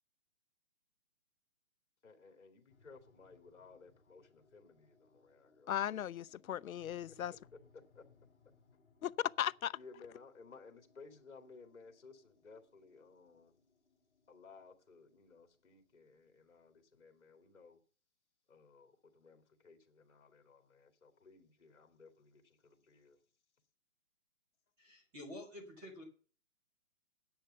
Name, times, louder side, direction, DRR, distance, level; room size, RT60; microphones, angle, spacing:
voice 1, 2.0-6.0 7.1-7.2 7.7-8.0 9.7-13.6 14.3-17.8 18.5-23.2, left 4 dB, 55° left, 2.5 m, -58 dB
sound 1, 2.7-17.3, left 5 dB, 40° left, 3.3 m, -70 dB
voice 2, 5.7-7.3 9.0-9.1 9.4-9.8, left 10 dB, 80° left, 0.6 m, -37 dB
voice 3, 24.8-26.0, left 1 dB, 10° right, 2.2 m, -49 dB
10.5 x 7.8 x 6.8 m
hypercardioid pair, 180°, 41 cm